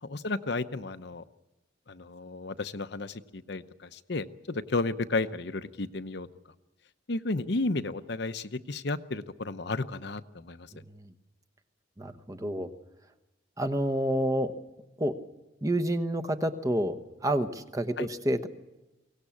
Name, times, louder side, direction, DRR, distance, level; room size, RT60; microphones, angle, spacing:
voice 1, 0.0-1.2 1.9-6.3 7.1-10.7 18.0-18.1, left 3 dB, 55° left, 11 dB, 0.8 m, -33 dB
voice 2, 10.7-11.1 12.0-12.7 13.6-14.5 15.0-15.1 15.6-18.5, right 1 dB, 15° right, 7 dB, 1.1 m, -29 dB
23.5 x 17.5 x 8.6 m, 1.0 s
head